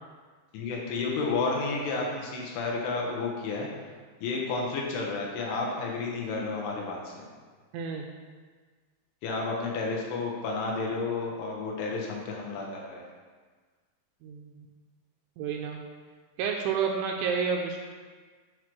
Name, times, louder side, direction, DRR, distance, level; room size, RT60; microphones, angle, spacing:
voice 1, 0.5-3.7 4.2-7.3 9.2-13.1, left 3 dB, 75° left, -2 dB, 3.4 m, -31 dB
voice 2, 14.2-14.5 15.4-15.8 16.4-17.8, right 6 dB, 85° right, 2 dB, 2.7 m, -29 dB
8.9 x 3.3 x 6.0 m, 1.5 s
omnidirectional pair, 5.6 m